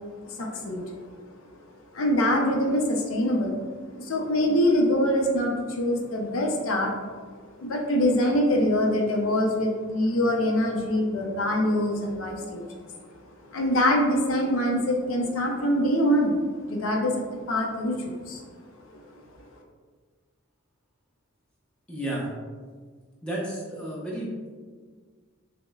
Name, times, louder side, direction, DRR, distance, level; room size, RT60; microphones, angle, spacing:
voice 1, 0.2-1.0 1.9-3.6 3.9-6.9 7.6-12.9 13.5-18.4 18.9-19.0, left 1 dB, 70° left, 0 dB, 0.5 m, -24 dB
voice 2, 21.9-22.3 23.2-24.3, right 1 dB, 5° left, -5 dB, 0.6 m, -32 dB
6.0 x 2.1 x 2.3 m, 1.5 s
head